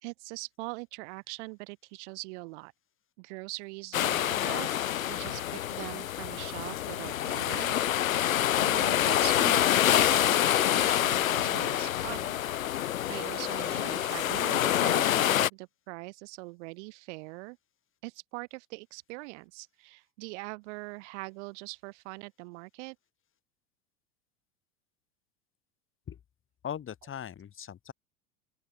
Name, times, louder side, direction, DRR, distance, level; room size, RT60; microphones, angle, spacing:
voice 1, 0.0-2.7 3.2-4.7 5.1-12.4 13.1-17.6 18.0-23.0, right 27 dB, 55° right, 4.2 m, -42 dB
sound 1, 3.9-15.5, left 12 dB, 70° left, 1.4 m, -27 dB
voice 2, 26.6-27.9, left 9 dB, 30° left, 6.9 m, -39 dB
open air
figure-of-eight pair, 85°, 42 cm